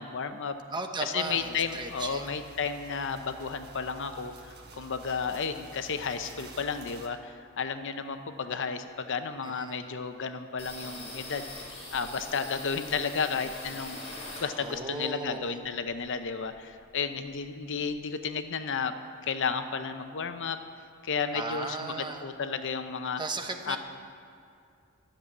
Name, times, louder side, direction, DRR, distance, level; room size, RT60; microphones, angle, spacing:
voice 1, 0.0-0.6 1.0-14.0 14.4-18.9 19.2-20.6 21.0-23.2 23.7-23.8, left 5 dB, 60° left, 9 dB, 0.7 m, -33 dB
voice 2, 0.7-2.4 9.4-9.8 14.6-15.5 21.3-22.2 23.2-23.8, right 3 dB, 20° right, 5 dB, 1.0 m, -36 dB
sound 1, 1.2-7.1, right 3 dB, 50° right, 1.4 m, -50 dB
sound 2, 10.6-14.9 15.3-16.6 16.9-17.0 17.3-18.0, left 2 dB, 30° left, 4.4 m, -43 dB
13.0 x 7.5 x 9.6 m, 2.5 s
head